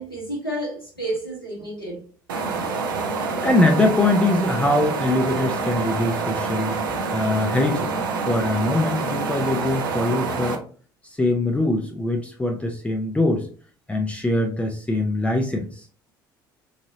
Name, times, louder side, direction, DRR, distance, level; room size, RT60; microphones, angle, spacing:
voice 1, 0.0-2.0 6.8-7.0, right 1 dB, 90° left, 0.8 m, -31 dB
sound 1, 2.3-10.6, right 4 dB, 70° right, 0.5 m, -27 dB
voice 2, 3.4-10.6 11.0-13.5 13.9-15.8, left 2 dB, 10° left, 0.5 m, -23 dB
4.0 x 2.7 x 2.6 m
figure-of-eight pair, 60°, 11 cm